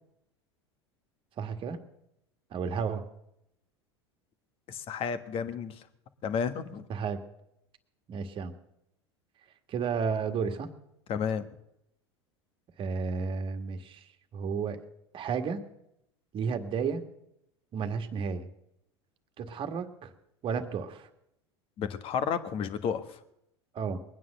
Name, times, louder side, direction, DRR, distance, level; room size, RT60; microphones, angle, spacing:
voice 1, 1.4-1.8 2.5-3.1 6.9-7.2 8.1-8.5 9.7-10.7 12.8-14.8 15.1-15.6 16.3-17.0 17.7-18.5 19.4-20.1 20.4-21.1 23.7-24.0, right 6 dB, 40° right, 8 dB, 1.7 m, -32 dB
voice 2, 4.7-5.8 6.2-6.9 11.1-11.4 21.8-23.2, left 7 dB, 40° left, 11 dB, 1.4 m, -32 dB
21.5 x 9.5 x 6.6 m, 0.80 s
hypercardioid pair, 80°, 14 cm